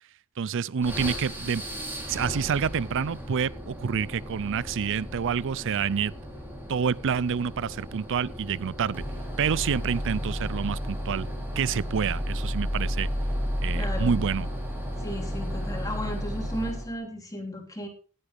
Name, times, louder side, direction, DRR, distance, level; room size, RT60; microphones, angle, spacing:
voice 1, 0.4-1.6 2.1-6.1 6.7-9.0 9.4-11.3 11.6-13.1 13.6-14.5, right 6 dB, 60° right, 0.5 m, -28 dB
sound 1, 0.8-17.0, equal, 10° right, 3.4 m, -33 dB
voice 2, 13.7-14.3 15.0-17.9, equal, 15° left, 3.4 m, -35 dB
16.0 x 11.0 x 3.5 m
head